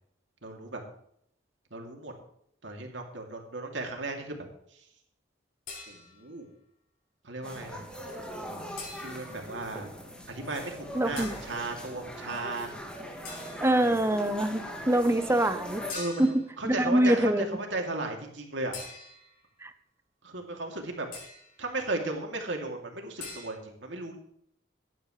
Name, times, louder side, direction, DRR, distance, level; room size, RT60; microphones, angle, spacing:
voice 1, 0.4-0.8 1.7-2.1 2.6-4.9 5.9-6.5 7.2-7.8 9.0-9.9 10.3-12.7 13.9-14.0 15.9-18.7 20.2-21.1 21.6-24.2, right 2 dB, 75° right, 2 dB, 2.9 m, -35 dB
sound 1, 5.7-6.4 8.8-9.4 11.2-11.5 13.2-13.8 15.9-16.5 18.7-19.4 21.1-21.6 23.2-23.5, left 4 dB, 50° left, 6.0 m, -43 dB
sound 2, 7.4-15.9, equal, 5° left, 2.3 m, -41 dB
voice 2, 11.0-11.3 13.6-15.8 16.2-16.3 16.6-17.4 19.6-19.7, right 1 dB, 15° right, 10 dB, 0.9 m, -24 dB
16.5 x 11.0 x 3.3 m, 0.70 s
head